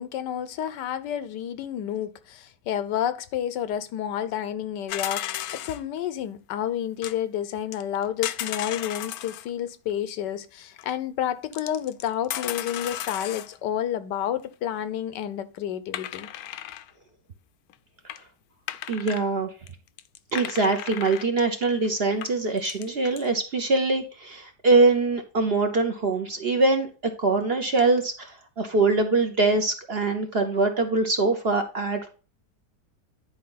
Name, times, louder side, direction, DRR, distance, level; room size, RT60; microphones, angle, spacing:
voice 1, 0.0-16.3, left 10 dB, 90° left, 1.4 m, -30 dB
sound 1, 4.9-5.8 7.0-7.2 7.7-9.5 10.8-10.9 11.5-13.6 15.9-16.9 17.7-17.8 18.1-18.2 18.7-19.3 19.7-19.8 20.0-21.3 21.8-21.9 22.2-22.9 23.2-23.3, left 12 dB, 70° left, 0.9 m, -34 dB
voice 2, 18.9-19.5 20.3-32.1, right 3 dB, 45° right, 0.8 m, -23 dB
10.5 x 4.7 x 3.9 m
omnidirectional pair, 1.8 m